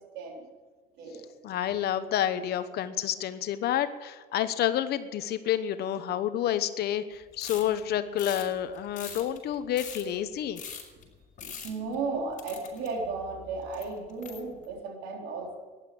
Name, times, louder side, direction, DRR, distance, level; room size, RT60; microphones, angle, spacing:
voice 1, 0.1-0.5 1.0-1.3 11.6-15.6, right 4 dB, 90° right, 1 dB, 3.8 m, -34 dB
voice 2, 1.4-10.6, left 11 dB, 70° left, 12 dB, 1.0 m, -29 dB
sound 1, 7.4-7.8 8.2-8.5 8.8-10.1 10.6-11.0 11.4-12.0 12.4-13.1 13.7-14.6, left 6 dB, 50° left, 6.2 m, -42 dB
15.0 x 11.0 x 8.5 m, 1.3 s
cardioid pair, 105°, 17 cm